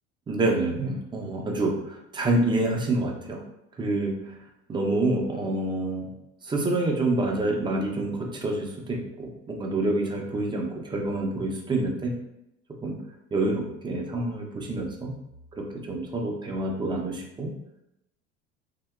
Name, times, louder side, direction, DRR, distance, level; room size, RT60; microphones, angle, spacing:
voice 1, 0.3-3.4 3.8-4.4 4.7-6.1 6.4-12.1 12.8-13.0 13.3-15.1 15.5-17.5, right 2 dB, 15° right, 1 dB, 0.4 m, -27 dB
2.7 x 2.0 x 2.2 m, 0.82 s
hypercardioid pair, 70°, 38 cm